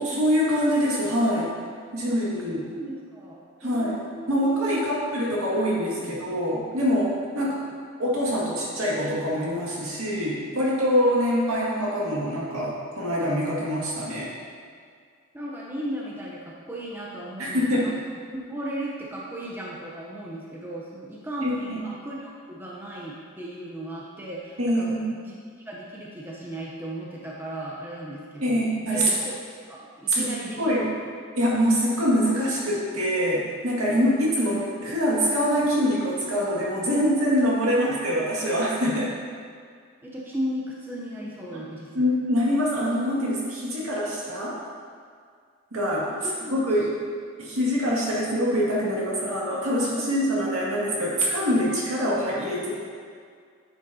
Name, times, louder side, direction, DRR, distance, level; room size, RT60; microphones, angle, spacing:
voice 1, 0.0-1.5 1.9-2.7 3.6-4.0 4.3-7.6 8.0-14.3 17.4-17.9 21.4-21.8 24.6-25.1 28.4-29.1 30.1-30.3 30.6-30.9 31.3-39.2 41.5-41.6 41.9-44.6 45.7-46.1 46.5-46.9 47.4-52.7, equal, 75° right, -6 dB, 2.0 m, -24 dB
voice 2, 2.7-5.0 5.7-6.2 7.4-7.6 15.3-17.9 18.3-29.3 29.7-30.9 40.0-42.0 46.2-46.6, right 1 dB, 10° right, -5 dB, 0.7 m, -36 dB
9.8 x 6.3 x 2.8 m, 2.1 s
head